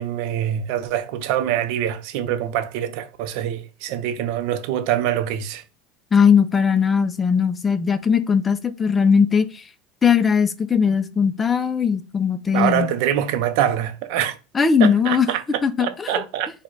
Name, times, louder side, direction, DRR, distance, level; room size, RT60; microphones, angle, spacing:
voice 1, 0.0-5.6 12.5-14.4 14.8-15.4 15.8-16.5, right 10 dB, 65° right, 0.5 m, -24 dB
voice 2, 6.1-9.6 10.0-12.9 14.5-15.3 15.6-16.2, left 6 dB, 15° left, 0.4 m, -19 dB
4.9 x 2.2 x 3.8 m
supercardioid pair, 150°, 0 cm